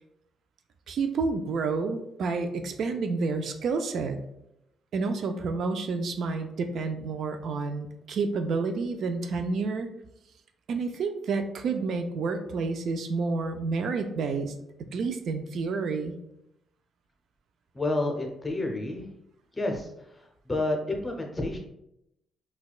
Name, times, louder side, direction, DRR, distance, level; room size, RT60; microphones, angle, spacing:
voice 1, 0.9-4.2 4.9-9.9 10.7-14.5 14.9-16.1, right 4 dB, 65° right, 7 dB, 0.3 m, -29 dB
voice 2, 17.7-19.1 19.5-21.6, left 2 dB, 20° left, 2 dB, 0.7 m, -30 dB
4.1 x 2.3 x 2.3 m, 0.81 s
cardioid pair, 90°, 0 cm